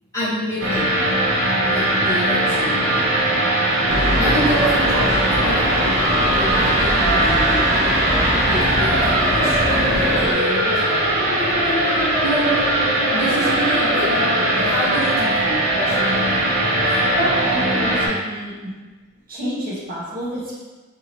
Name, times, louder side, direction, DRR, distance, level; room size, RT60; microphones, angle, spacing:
voice 1, 0.1-0.9 1.7-2.8 4.1-8.0 8.4-11.6 12.2-12.6 13.1-16.6, right 1 dB, 15° left, -12 dB, 1.2 m, -28 dB
sound 1, 0.6-18.1, right 1 dB, 70° right, 0.9 m, -19 dB
sound 2, 3.9-10.3, equal, 15° right, 0.4 m, -23 dB
voice 2, 16.7-18.7 19.3-20.5, equal, 40° right, -7 dB, 0.9 m, -28 dB
2.8 x 2.6 x 2.9 m, 1.3 s
head